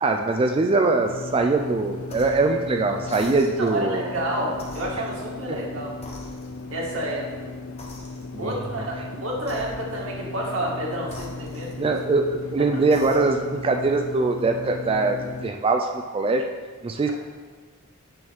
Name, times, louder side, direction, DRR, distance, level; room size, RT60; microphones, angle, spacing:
voice 1, 0.0-4.1 5.5-5.6 8.3-8.7 11.8-16.5 16.8-17.1, right 3 dB, 25° right, 4 dB, 0.4 m, -22 dB
sound 1, 1.0-15.5, left 3 dB, 85° left, 0.4 m, -36 dB
sound 2, 2.0-2.5 3.0-3.8 4.5-5.7 6.0-6.8 7.8-8.5 9.4-10.1 11.0-12.2 12.8-13.5, left 2 dB, 30° left, 1.1 m, -44 dB
voice 2, 3.6-5.9 6.7-7.5 8.4-11.9 12.9-13.0, right 1 dB, 90° right, -3 dB, 1.9 m, -30 dB
8.7 x 6.3 x 3.5 m, 1.4 s
head